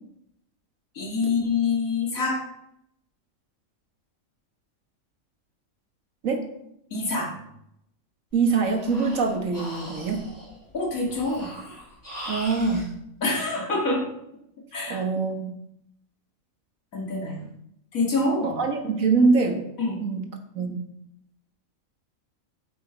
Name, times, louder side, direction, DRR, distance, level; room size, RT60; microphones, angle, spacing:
voice 1, 0.9-2.5 6.9-7.4 10.7-11.5 13.2-14.1 14.7-15.0 16.9-17.5 17.9-18.6 19.8-20.0, left 3 dB, 85° left, -1 dB, 2.5 m, -26 dB
Breathing, 8.3-12.9, equal, 15° left, 2.9 m, -40 dB
voice 2, 8.3-10.2 12.3-12.9 14.9-15.5 18.4-19.6 20.0-20.2 20.6-20.8, right 4 dB, 75° right, 4 dB, 1.8 m, -24 dB
9.0 x 7.8 x 4.5 m, 0.77 s
omnidirectional pair, 1.4 m